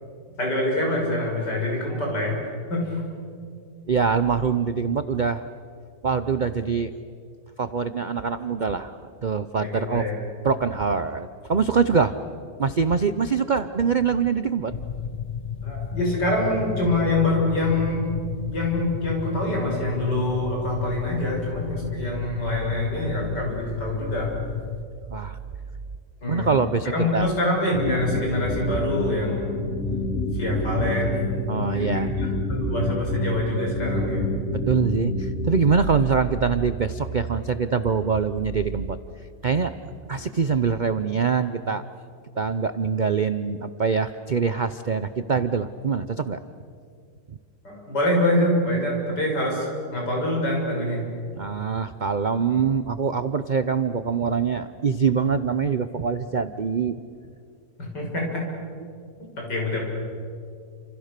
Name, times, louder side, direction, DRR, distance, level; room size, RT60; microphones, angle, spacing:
voice 1, 0.4-2.4 2.7-2.9 9.6-10.1 15.6-18.1 18.5-24.3 26.2-26.5 26.8-29.6 30.3-34.2 47.6-51.1 52.5-52.6 57.8-58.4 59.4-59.8, left 1 dB, 70° left, -1 dB, 7.1 m, -25 dB
voice 2, 3.9-5.4 6.0-6.9 7.6-10.1 10.4-12.2 12.6-14.7 25.1-25.4 26.3-27.3 31.5-32.1 34.5-39.0 39.4-39.7 40.1-41.8 42.4-46.4 47.3-47.4 51.4-57.0, right 5 dB, 80° right, 11 dB, 0.4 m, -24 dB
sound 1, 14.7-24.8, left 7 dB, 45° left, 0.6 m, -32 dB
sound 2, 27.7-35.7, left 2 dB, 15° left, 6.2 m, -28 dB
29.0 x 27.5 x 6.7 m, 2.3 s
omnidirectional pair, 1.9 m